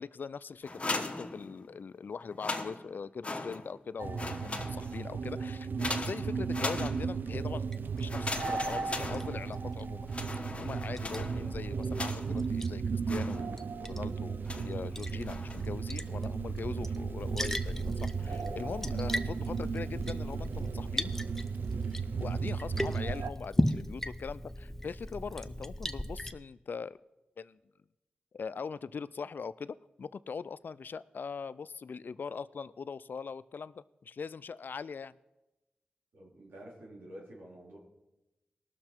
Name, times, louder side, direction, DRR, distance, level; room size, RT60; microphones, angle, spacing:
voice 1, 0.0-10.1 10.5-21.1 22.2-27.0 27.4-27.6 28.3-35.2, left 5 dB, 65° left, 17 dB, 0.4 m, -41 dB
sound 1, 0.6-1.9 2.3-3.9 4.1-5.1 5.8-7.4 8.1-9.7 10.1-12.5 13.1-13.8 14.5-14.8 15.2-15.7, left 2 dB, 35° left, 1.1 m, -39 dB
sound 2, 4.0-23.3, right 5 dB, 65° right, 0.4 m, -35 dB
Liquid, 7.4-26.3, equal, 10° left, 0.6 m, -38 dB
voice 2, 36.1-37.8, right 1 dB, 85° right, -3 dB, 3.4 m, -49 dB
18.5 x 6.6 x 4.4 m, 0.99 s
cardioid pair, 50°, 3 cm